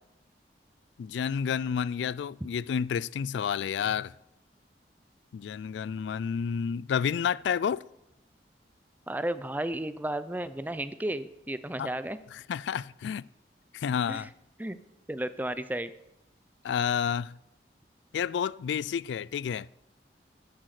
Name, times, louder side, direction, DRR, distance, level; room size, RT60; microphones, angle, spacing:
voice 1, 1.0-4.1 5.3-7.8 11.8-11.9 12.5-13.2 13.7-14.3 16.6-17.3 18.1-19.7, left 7 dB, 85° left, 0.3 m, -30 dB
voice 2, 9.1-12.2 14.1-14.3 14.6-14.8 15.1-15.9, right 1 dB, 10° right, 0.4 m, -33 dB
12.0 x 10.5 x 4.9 m
head